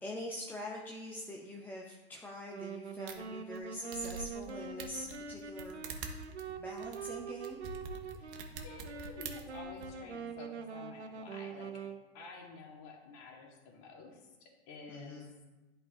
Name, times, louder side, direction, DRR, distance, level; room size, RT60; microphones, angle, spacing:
voice 1, 0.0-5.8 6.6-7.6 14.9-15.3, left 1 dB, 5° left, -2 dB, 0.6 m, -44 dB
Wind instrument woodwind instrument, 2.5-12.0, right 5 dB, 85° right, 0.8 m, -44 dB
sound 1, 3.1-3.2 3.6-3.7 3.9-4.5 4.8-9.9, right 4 dB, 55° right, 1.1 m, -45 dB
voice 2, 8.6-11.8 12.1-15.3, left 4 dB, 45° left, 0 dB, 2.0 m, -51 dB
10.5 x 4.4 x 3.6 m, 1.1 s
hypercardioid pair, 110°, 33 cm